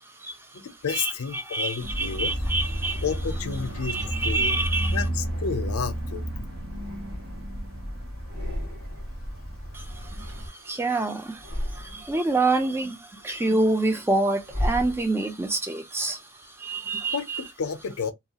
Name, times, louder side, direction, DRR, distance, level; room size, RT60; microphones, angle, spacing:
voice 1, 0.0-0.6 0.9-3.0 3.8-5.0 9.7-17.4, right 2 dB, 10° right, 0.4 m, -27 dB
voice 2, 0.5-2.3 3.0-4.6 4.9-6.3 16.7-16.8 17.1-18.1, left 6 dB, 80° left, 0.5 m, -31 dB
sound 1, 1.8-10.5, right 1 dB, 65° right, 1.3 m, -32 dB
sound 2, 4.0-4.4 5.1-6.1 6.5-7.8 8.1-9.2 9.5-10.9 11.3-12.3 12.8-15.5, left 1 dB, 40° right, 1.8 m, -36 dB
2.8 x 2.3 x 2.8 m
head